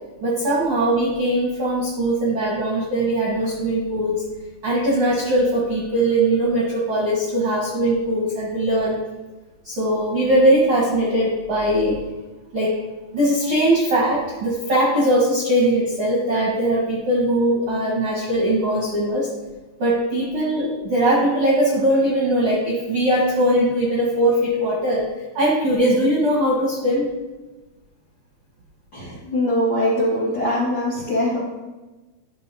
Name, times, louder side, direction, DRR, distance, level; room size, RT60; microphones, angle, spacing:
voice 1, 0.2-4.2 4.6-9.0 9.6-12.0 12.5-12.8 13.1-19.3 19.8-25.1 25.3-27.1, right 1 dB, 60° right, -5 dB, 1.4 m, -20 dB
voice 2, 28.9-31.4, left 1 dB, 40° left, -7 dB, 1.7 m, -22 dB
10.5 x 5.7 x 2.7 m, 1.1 s
omnidirectional pair, 4.5 m